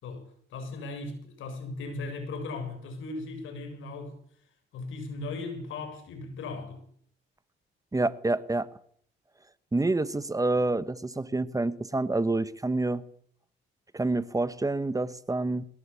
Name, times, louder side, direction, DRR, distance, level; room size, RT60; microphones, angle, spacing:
voice 1, 0.5-4.2 4.7-6.8, left 3 dB, 80° left, 7.2 m, -37 dB
voice 2, 7.9-8.7 9.7-13.0 13.9-15.6, right 2 dB, 15° right, 1.3 m, -27 dB
22.0 x 19.0 x 8.5 m
cardioid pair, 90°, 20 cm